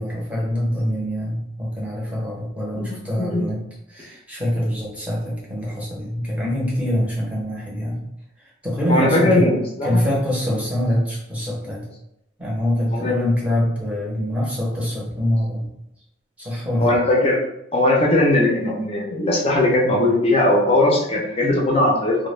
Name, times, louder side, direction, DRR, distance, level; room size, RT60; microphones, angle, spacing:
voice 1, 0.0-3.6 3.9-8.0 8.6-9.5 9.8-11.9 12.4-15.7 16.4-17.0, left 1 dB, 5° right, -5 dB, 0.7 m, -24 dB
voice 2, 2.8-3.4 8.9-10.0 12.9-13.2 16.8-17.4 17.7-22.3, left 1 dB, 30° left, -2 dB, 0.5 m, -19 dB
2.1 x 2.1 x 3.1 m, 0.82 s
head